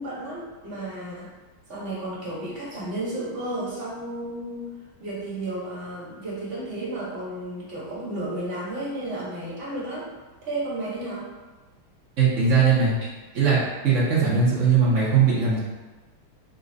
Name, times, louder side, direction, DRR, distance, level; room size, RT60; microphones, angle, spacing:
voice 1, 0.0-1.3 1.7-4.7 5.0-10.1 10.4-11.3 13.0-13.1, right 1 dB, 35° right, -6 dB, 1.1 m, -32 dB
voice 2, 12.2-12.9 13.3-13.6 13.8-15.6, right 5 dB, 80° right, -6 dB, 0.6 m, -19 dB
4.1 x 2.6 x 3.8 m, 1.3 s
omnidirectional pair, 2.4 m